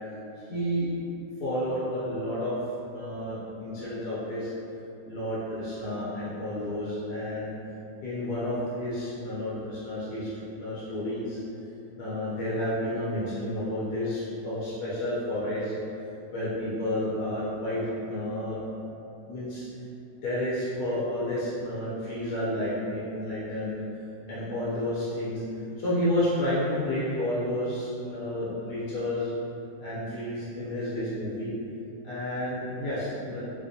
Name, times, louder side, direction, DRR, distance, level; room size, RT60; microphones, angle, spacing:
voice 1, 0.1-0.9 1.4-2.6 2.9-4.5 5.1-7.5 8.0-10.3 10.6-11.4 12.0-15.7 16.3-18.6 19.3-19.6 20.2-23.8 24.3-29.3 29.8-31.5 32.0-33.5, left 1 dB, 70° left, -9 dB, 1.2 m, -31 dB
4.1 x 2.5 x 2.6 m, 2.7 s
omnidirectional pair, 1.9 m